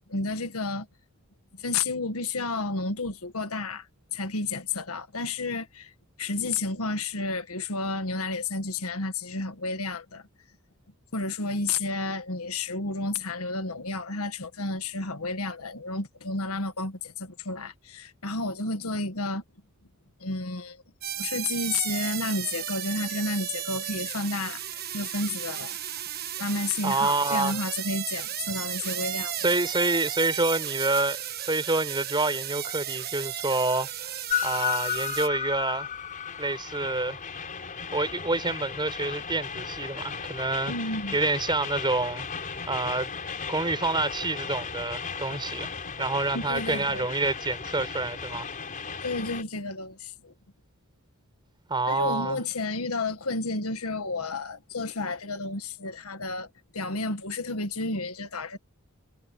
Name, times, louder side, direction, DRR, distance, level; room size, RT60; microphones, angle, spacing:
voice 1, 0.1-0.9 1.6-3.9 4.1-5.9 6.2-10.2 11.1-19.4 20.2-20.8 21.2-25.8 26.4-29.5 40.7-41.2 46.3-47.1 49.0-50.3 51.9-56.5 56.7-58.6, left 3 dB, 90° left, 1.7 m, -31 dB
sound 1, 21.0-35.3, right 11 dB, 45° right, 1.2 m, -34 dB
voice 2, 26.8-27.6 29.4-34.2 34.4-35.9 36.4-37.2 37.9-40.7 41.1-42.3 42.7-43.1 43.5-45.7 46.0-48.5 51.7-52.4, right 3 dB, 20° right, 4.6 m, -27 dB
Train, 34.3-49.4, left 7 dB, 40° left, 4.2 m, -35 dB
head